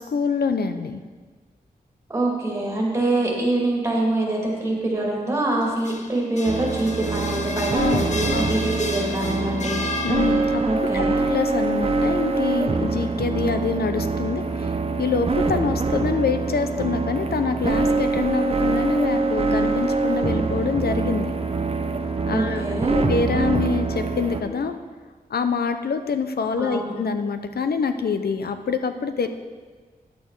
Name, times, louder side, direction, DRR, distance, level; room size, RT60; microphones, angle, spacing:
voice 1, 0.1-1.0 5.5-5.8 7.7-8.4 10.0-10.6 10.9-21.3 22.3-22.6 22.9-24.8 25.3-29.3, left 5 dB, 85° left, 8 dB, 0.7 m, -25 dB
voice 2, 2.1-9.8 10.6-11.2 22.3-23.0 26.6-26.9, right 1 dB, 15° right, -3 dB, 2.4 m, -25 dB
sound 1, 5.6-10.8, left 3 dB, 50° left, 0.8 m, -33 dB
sound 2, 6.5-24.4, right 3 dB, 40° right, 0.7 m, -24 dB
10.5 x 8.4 x 4.7 m, 1.4 s
wide cardioid pair, 130°, 16 cm